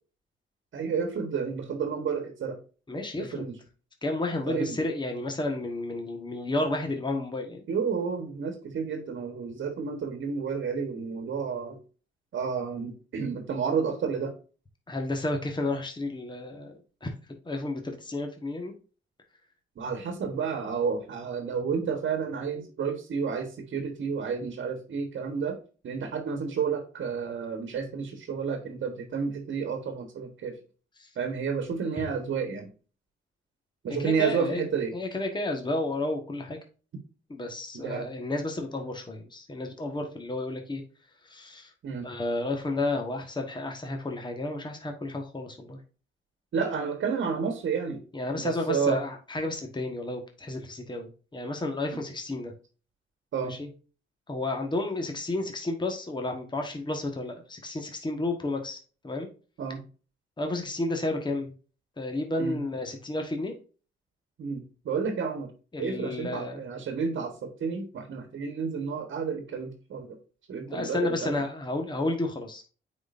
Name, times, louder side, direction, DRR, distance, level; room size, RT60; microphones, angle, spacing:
voice 1, 0.7-2.6 3.2-3.6 4.5-4.8 7.7-11.8 12.3-14.3 19.8-25.6 25.8-30.6 31.2-32.7 33.8-34.9 37.8-38.1 41.8-42.1 46.5-48.0 48.4-49.0 53.3-53.5 59.6-59.8 62.4-62.6 64.4-65.5 65.8-70.2 70.5-71.3, right 6 dB, 65° right, 6 dB, 1.4 m, -31 dB
voice 2, 2.9-3.4 4.0-7.6 14.9-16.7 17.0-17.1 17.4-18.7 31.0-31.1 31.9-32.1 34.0-34.6 34.9-36.6 37.3-40.8 41.2-41.7 42.0-45.8 48.1-52.5 53.4-53.7 54.3-58.8 59.0-59.3 60.4-61.5 62.0-63.6 65.7-66.6 70.7-72.6, left 2 dB, 20° left, 3 dB, 1.4 m, -31 dB
9.0 x 4.2 x 2.6 m, 0.37 s
cardioid pair, 75°, 21 cm